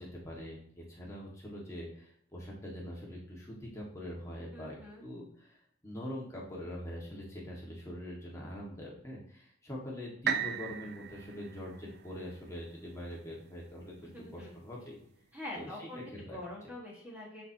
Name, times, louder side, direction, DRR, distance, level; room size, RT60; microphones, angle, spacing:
voice 1, 0.0-13.9 14.3-15.0 15.5-16.4, equal, 15° left, -4 dB, 1.7 m, -43 dB
voice 2, 4.5-5.0 14.0-14.6 15.3-16.0 16.3-17.4, left 1 dB, 10° right, -4 dB, 1.5 m, -44 dB
sound 1, 10.3-14.2 14.8-14.9, right 8 dB, 55° right, 0.5 m, -38 dB
11.5 x 4.4 x 2.8 m, 0.65 s
head